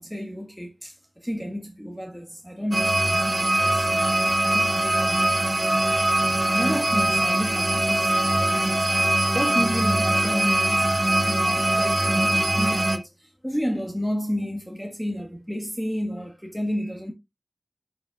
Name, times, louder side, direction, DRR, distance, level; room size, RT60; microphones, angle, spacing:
voice 1, 0.0-5.2 6.5-9.0 9.3-17.1, equal, ahead, 1.7 m, -32 dB
sound 1, 2.7-13.0, right 2 dB, 50° right, 1.2 m, -22 dB
10.5 x 5.8 x 2.4 m
wide cardioid pair, 45°, 0 cm